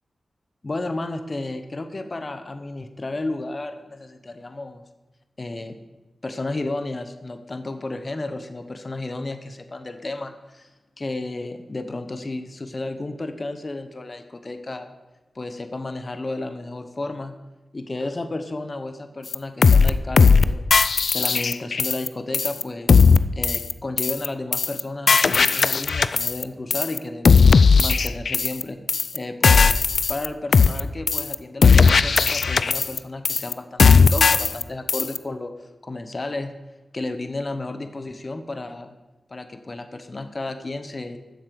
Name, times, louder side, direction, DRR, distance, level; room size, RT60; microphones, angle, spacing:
voice 1, 0.6-4.8 5.4-5.8 6.2-10.7 11.0-14.9 15.3-17.4 17.7-20.6 21.1-23.0 23.3-27.4 27.8-28.8 29.1-29.8 30.1-36.5 36.9-38.9 39.3-41.2, left 2 dB, 35° left, 8 dB, 0.9 m, -32 dB
sound 1, 19.3-19.4 19.6-19.9 20.2-20.4 20.7-22.1 22.3-22.6 22.9-23.2 23.4-23.7 24.0-24.3 24.5-24.8 25.1-26.4 26.7-27.0 27.3-28.6 28.9-29.2 29.4-30.3 30.5-30.8 31.1-31.4 31.6-33.0 33.3-33.5 33.8-34.6 34.9-35.2, left 5 dB, 65° left, 0.4 m, -16 dB
12.0 x 7.4 x 6.9 m, 1.1 s
wide cardioid pair, 95°, 0 cm